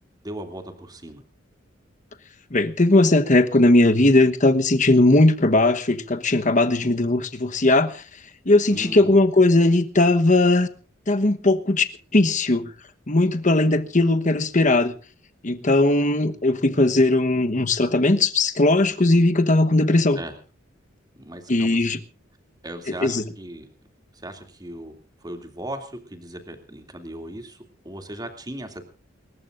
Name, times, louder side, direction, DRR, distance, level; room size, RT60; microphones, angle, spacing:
voice 1, 0.2-1.2 8.7-9.2 20.1-20.3 21.2-22.0 22.6-23.7 24.1-24.9 25.2-28.8, right 1 dB, 20° right, 2.7 m, -37 dB
voice 2, 2.5-7.9 8.5-10.7 11.1-11.9 12.1-12.7 13.1-14.9 15.4-20.2 21.5-22.0 23.0-23.2, left 2 dB, 40° left, 1.1 m, -18 dB
29.5 x 14.5 x 2.6 m
head